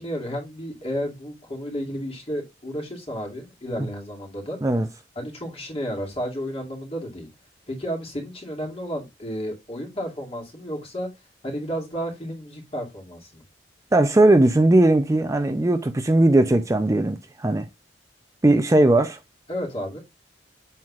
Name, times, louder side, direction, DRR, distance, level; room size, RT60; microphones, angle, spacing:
voice 1, 0.0-4.6 5.2-7.3 7.7-11.1 11.4-13.4 19.5-20.0, equal, 35° left, 2.4 m, -32 dB
voice 2, 13.9-17.7 18.4-19.2, right 1 dB, 20° right, 0.5 m, -18 dB
7.5 x 5.6 x 2.4 m
head